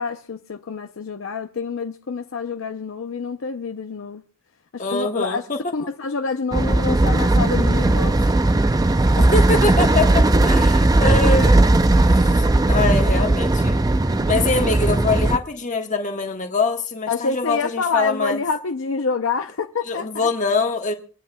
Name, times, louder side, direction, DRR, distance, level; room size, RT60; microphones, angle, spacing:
voice 1, 0.0-4.2 4.7-5.5 5.7-8.3 17.1-20.3, left 4 dB, 65° left, 0.6 m, -27 dB
voice 2, 4.8-5.6 9.1-11.7 12.0-13.8 14.3-18.4 19.9-20.9, left 3 dB, 35° left, 1.4 m, -24 dB
sound 1, 6.5-15.4, right 2 dB, 15° right, 0.4 m, -17 dB
25.5 x 9.3 x 2.2 m
head